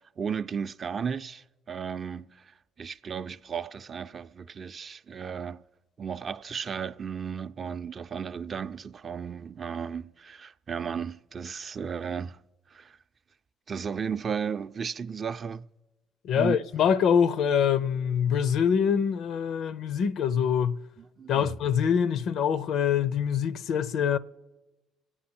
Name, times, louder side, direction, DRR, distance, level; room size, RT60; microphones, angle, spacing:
voice 1, 0.2-5.6 6.0-12.4 12.7-13.0 13.7-15.6 16.3-16.6 21.0-21.5, right 6 dB, 45° right, 0.5 m, -34 dB
voice 2, 16.2-20.8 21.3-24.2, left 7 dB, 65° left, 0.5 m, -24 dB
26.0 x 8.7 x 4.4 m
hypercardioid pair, 60°, 0 cm